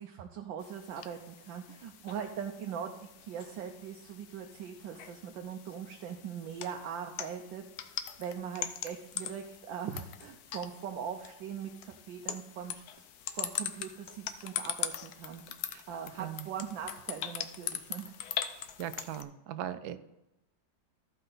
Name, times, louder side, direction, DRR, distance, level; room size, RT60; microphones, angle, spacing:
voice 1, 0.0-13.1 13.3-15.6 15.9-18.2, right 8 dB, 90° right, 3 dB, 1.5 m, -41 dB
sound 1, 0.6-19.2, left 9 dB, 65° left, 1.0 m, -42 dB
voice 2, 16.2-16.5 18.5-20.0, right 11 dB, 70° right, 10 dB, 1.0 m, -40 dB
14.0 x 5.5 x 3.9 m, 0.93 s
omnidirectional pair, 2.0 m